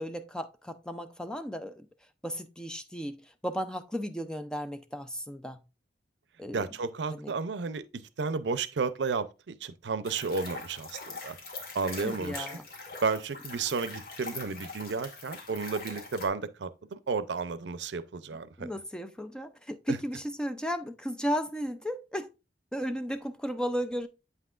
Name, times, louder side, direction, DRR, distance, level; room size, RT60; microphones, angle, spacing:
voice 1, 0.0-1.9 2.2-5.6 6.4-6.6 7.2-7.3 12.0-12.6 18.6-22.3 22.7-24.1, equal, 5° left, 0.4 m, -34 dB
voice 2, 6.5-11.4 11.7-12.6 13.0-18.7 19.9-20.0, right 4 dB, 80° right, 0.5 m, -32 dB
sound 1, 10.0-16.3, left 3 dB, 55° left, 1.7 m, -42 dB
8.1 x 5.7 x 2.4 m
head